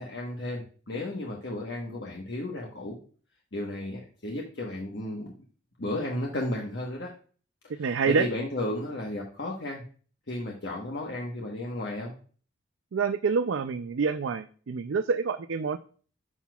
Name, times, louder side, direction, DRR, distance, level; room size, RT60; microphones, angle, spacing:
voice 1, 0.0-3.0 3.5-5.3 5.8-7.1 7.8-9.8 10.3-12.1, left 1 dB, 60° left, -1 dB, 1.2 m, -34 dB
voice 2, 7.8-8.3 12.9-15.8, right 5 dB, 80° right, 9 dB, 0.4 m, -27 dB
9.7 x 6.1 x 2.3 m, 0.41 s
head